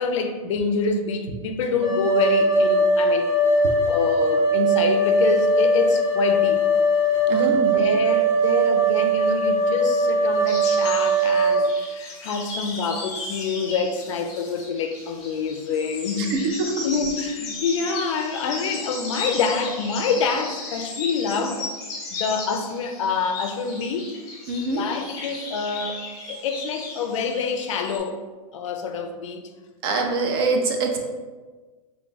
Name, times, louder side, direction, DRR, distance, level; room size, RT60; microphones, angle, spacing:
voice 1, 0.0-3.3 3.9-6.6 7.3-16.5 16.8-21.7 22.2-24.1 24.8-26.0 26.3-28.2 28.5-29.4, left 5 dB, 55° left, 6 dB, 0.4 m, -26 dB
sound 1, 1.8-11.6, right 1 dB, 70° right, 1.3 m, -20 dB
voice 2, 7.3-7.7 16.2-16.9 24.5-24.8 29.8-31.0, right 3 dB, 40° right, 3 dB, 0.5 m, -24 dB
sound 2, 10.5-28.0, left 3 dB, 20° left, 0.8 m, -35 dB
3.4 x 2.3 x 3.9 m, 1.3 s
supercardioid pair, 165°, 19 cm